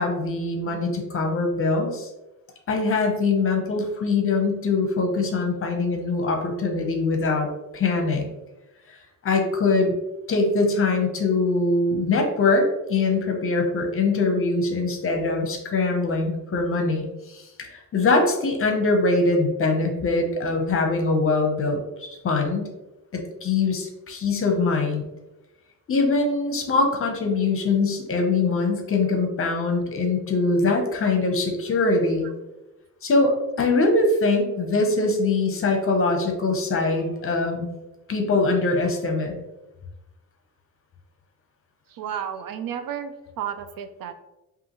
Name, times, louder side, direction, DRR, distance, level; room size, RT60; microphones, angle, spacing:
voice 1, 0.0-2.1 2.7-7.5 7.7-8.2 8.9-9.0 9.2-9.9 10.3-22.7 23.1-25.0 25.9-32.3 33.0-37.7 38.1-39.3, left 3 dB, 40° left, 3 dB, 0.8 m, -23 dB
voice 2, 41.9-44.1, right 9 dB, 75° right, 9 dB, 0.5 m, -32 dB
5.3 x 2.6 x 3.0 m, 0.98 s
cardioid pair, 150°, 35 cm